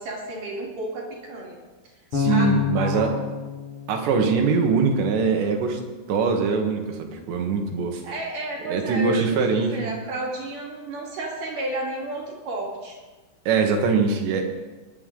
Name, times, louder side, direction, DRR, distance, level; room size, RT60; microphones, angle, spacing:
voice 1, 0.0-1.6 2.3-3.2 8.0-9.4 9.7-13.0, right 1 dB, 55° right, -1 dB, 3.3 m, -32 dB
Bass guitar, 2.1-5.1, left 8 dB, 70° left, 1.2 m, -28 dB
voice 2, 2.1-3.1 3.9-5.8 6.1-8.0 8.7-9.9 13.5-14.4, right 5 dB, 80° right, 3 dB, 3.7 m, -22 dB
22.0 x 11.0 x 3.8 m, 1.2 s
omnidirectional pair, 5.0 m